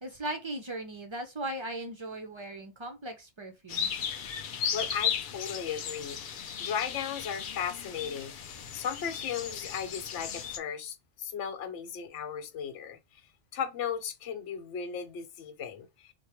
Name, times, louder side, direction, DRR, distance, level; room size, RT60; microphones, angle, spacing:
voice 1, 0.0-4.1, right 1 dB, 50° right, 0.3 m, -38 dB
sound 1, 3.7-10.6, left 8 dB, 60° left, 0.6 m, -35 dB
voice 2, 4.7-6.2 6.6-13.0 13.5-15.9, left 7 dB, 85° left, 1.0 m, -36 dB
3.2 x 2.2 x 4.3 m
omnidirectional pair, 1.2 m